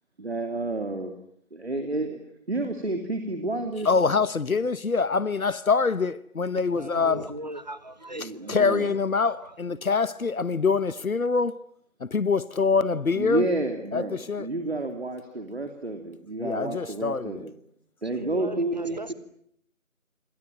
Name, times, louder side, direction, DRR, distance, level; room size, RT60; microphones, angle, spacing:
voice 1, 0.2-1.1 1.5-2.2 2.5-3.9 8.1-8.9 13.2-17.5 18.0-19.1, right 2 dB, 50° right, 3.2 m, -30 dB
voice 2, 3.8-7.3 8.5-11.6 12.0-13.4 13.9-14.5 16.4-17.5, left 5 dB, 80° left, 1.1 m, -25 dB
voice 3, 6.6-8.7 9.2-9.5 18.2-19.1, right 1 dB, 30° right, 1.4 m, -38 dB
27.0 x 22.0 x 9.3 m
figure-of-eight pair, 175°, 41 cm